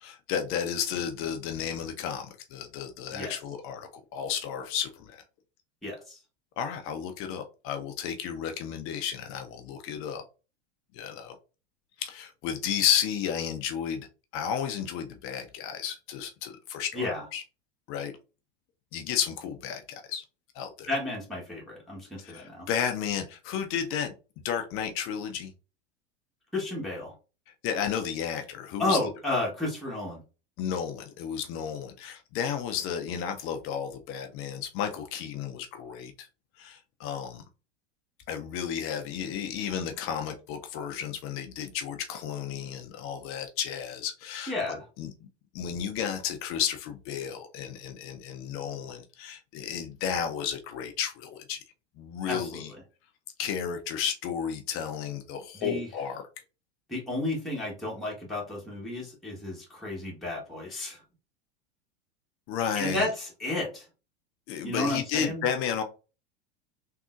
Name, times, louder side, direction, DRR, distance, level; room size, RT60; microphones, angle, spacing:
voice 1, 0.0-5.1 6.6-10.2 10.9-11.3 12.0-14.1 14.3-17.4 17.9-18.1 18.9-20.2 20.6-20.9 22.2-24.1 24.4-25.5 27.6-29.0 30.6-36.1 36.6-37.5 38.3-45.1 45.5-51.6 52.0-52.7 53.4-56.2 62.5-63.1 64.5-65.8, left 8 dB, 40° left, 6 dB, 0.6 m, -32 dB
voice 2, 5.8-6.2 16.9-17.3 20.9-22.7 26.5-27.1 28.8-30.2 44.5-44.9 52.2-52.8 55.5-55.9 56.9-61.0 62.7-63.9 64.6-65.4, left 2 dB, ahead, -5 dB, 1.2 m, -32 dB
3.6 x 2.7 x 2.4 m, 0.33 s
hypercardioid pair, 95°, 32 cm